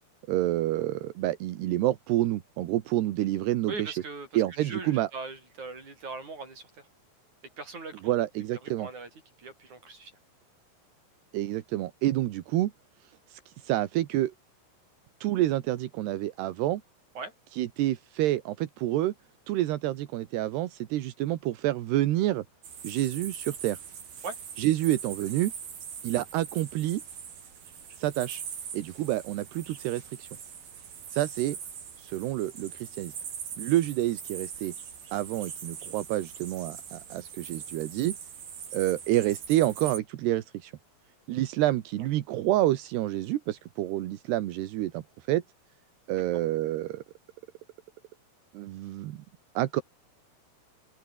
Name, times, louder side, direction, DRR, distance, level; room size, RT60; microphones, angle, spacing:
voice 1, 0.3-3.9 4.3-5.1 8.0-8.9 11.3-12.7 13.0-14.3 15.2-16.8 17.5-19.1 19.5-22.4 22.8-23.8 24.6-25.5 26.0-27.0 28.0-28.4 28.7-30.3 31.1-31.6 32.0-33.1 33.6-34.7 35.1-38.2 38.7-40.7 41.3-45.4 46.1-47.0 48.5-49.2 49.5-49.8, right 15 dB, 80° right, 3.3 m, -28 dB
voice 2, 3.7-6.9 7.6-8.1 8.8-9.1 9.4-10.1 17.2-17.3 24.2-24.4 46.3-46.4, right 3 dB, 45° right, 8.9 m, -40 dB
sound 1, 22.6-40.0, right 7 dB, 60° right, 5.5 m, -42 dB
open air
omnidirectional pair, 4.8 m